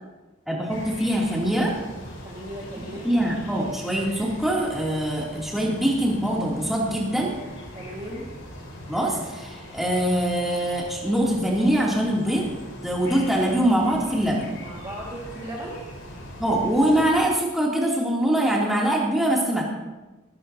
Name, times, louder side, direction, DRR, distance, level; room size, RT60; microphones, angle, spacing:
voice 1, 0.5-1.7 3.0-7.3 8.9-12.5 12.8-14.5 16.4-19.6, right 1 dB, ahead, -4 dB, 2.8 m, -23 dB
sound 1, 0.7-17.3, left 1 dB, 85° left, 4.5 m, -41 dB
voice 2, 2.2-3.1 7.7-8.3 14.6-15.8, right 1 dB, 25° right, -4 dB, 1.8 m, -36 dB
18.5 x 15.0 x 2.8 m, 1.1 s
head